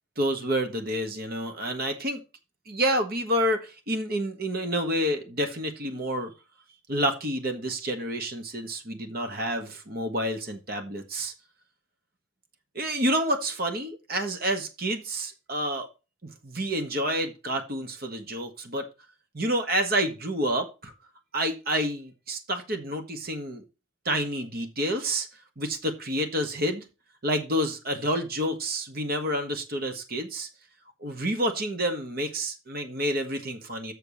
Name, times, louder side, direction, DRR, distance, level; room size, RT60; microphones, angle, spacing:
voice 1, 0.2-2.2 2.7-6.3 6.9-11.3 12.7-15.9 16.2-18.9 19.3-20.9 21.3-23.6 24.0-25.3 25.6-26.8 27.2-30.5 31.0-33.9, equal, 45° right, 6 dB, 1.4 m, -29 dB
6.8 x 6.7 x 5.4 m, 0.29 s
head